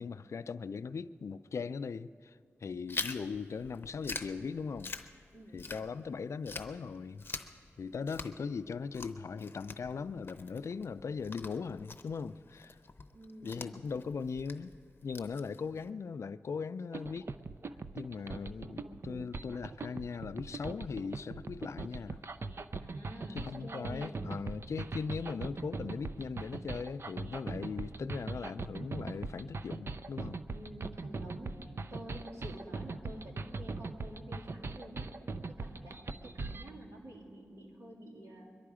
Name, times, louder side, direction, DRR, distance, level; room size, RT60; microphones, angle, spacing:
voice 1, 0.0-4.9 5.5-7.2 7.8-12.8 13.4-14.7 15.0-17.3 17.9-22.3 23.3-30.4, left 5 dB, 70° left, 0.4 m, -39 dB
Chewing mastication, 2.9-6.1 6.4-15.9, left 3 dB, 45° left, 0.8 m, -45 dB
voice 2, 5.3-5.7 13.1-13.8 18.4-19.3 22.8-24.3 30.5-35.1 35.5-38.6, equal, 70° right, 3.3 m, -49 dB
sound 1, 16.9-36.7, right 3 dB, 50° right, 0.5 m, -41 dB
22.5 x 11.5 x 4.9 m
wide cardioid pair, 75°, 5 cm